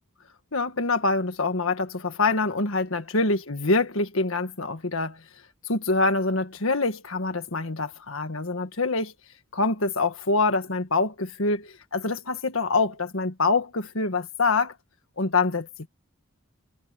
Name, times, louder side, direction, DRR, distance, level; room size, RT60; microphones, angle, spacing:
voice 1, 0.5-5.2 5.7-9.1 9.5-14.7 15.2-15.7, left 3 dB, 70° left, 1.8 m, -25 dB
head